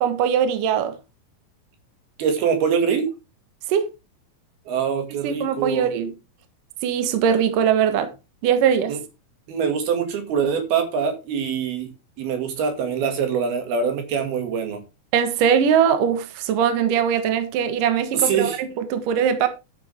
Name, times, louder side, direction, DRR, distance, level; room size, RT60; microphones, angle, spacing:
voice 1, 0.0-1.0 3.7-3.9 5.2-6.2 6.8-8.1 8.4-9.0 15.1-19.5, right 8 dB, 70° right, 2.8 m, -21 dB
voice 2, 2.2-3.1 4.7-5.9 8.9-9.0 9.5-11.9 12.2-14.8 18.1-18.6, right 6 dB, 90° right, 4.1 m, -24 dB
12.0 x 8.5 x 3.5 m
omnidirectional pair, 4.3 m